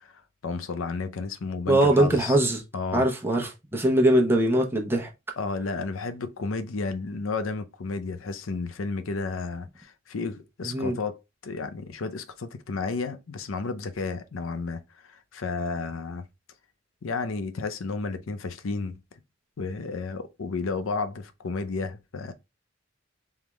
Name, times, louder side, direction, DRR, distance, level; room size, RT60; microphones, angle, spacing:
voice 1, 0.0-2.4 2.7-3.1 5.4-16.3 17.0-19.2 19.6-22.3, left 4 dB, 90° left, 0.6 m, -32 dB
voice 2, 1.7-2.6 2.9-5.1 10.6-11.0, right 1 dB, 10° right, 0.8 m, -22 dB
3.5 x 3.5 x 3.0 m
head